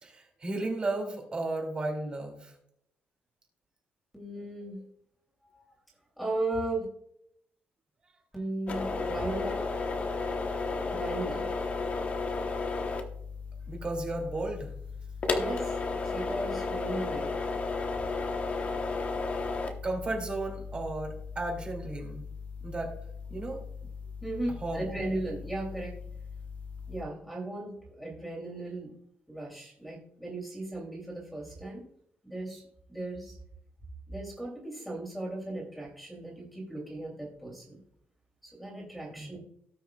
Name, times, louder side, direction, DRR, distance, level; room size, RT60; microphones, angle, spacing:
voice 1, 0.0-2.5 13.7-14.7 19.8-22.2 22.6-22.9 23.3-23.6 24.6-25.0 39.2-39.4, right 2 dB, 25° right, 1 dB, 2.5 m, -34 dB
voice 2, 4.1-4.8 5.4-5.7 6.2-6.9 8.3-9.5 10.9-11.5 15.4-15.8 16.0-17.3 24.2-26.0 26.9-28.9 29.3-31.9 32.2-32.6 32.9-33.4 34.1-37.8 38.4-39.4, right 2 dB, ahead, -4 dB, 2.8 m, -36 dB
sound 1, 8.7-27.0, left 4 dB, 35° left, 1.0 m, -34 dB
17.5 x 6.3 x 2.3 m, 0.70 s
cardioid pair, 165°, 4 cm